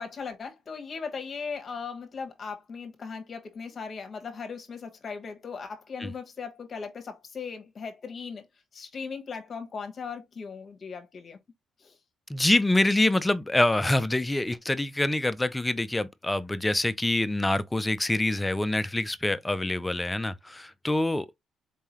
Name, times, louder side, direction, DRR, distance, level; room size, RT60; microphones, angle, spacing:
voice 1, 0.0-8.5 8.7-11.4 11.8-12.0, left 5 dB, 45° left, 1.3 m, -38 dB
voice 2, 12.3-21.4, left 2 dB, 15° left, 0.5 m, -26 dB
4.5 x 3.7 x 3.0 m
cardioid pair, 90°, 0 cm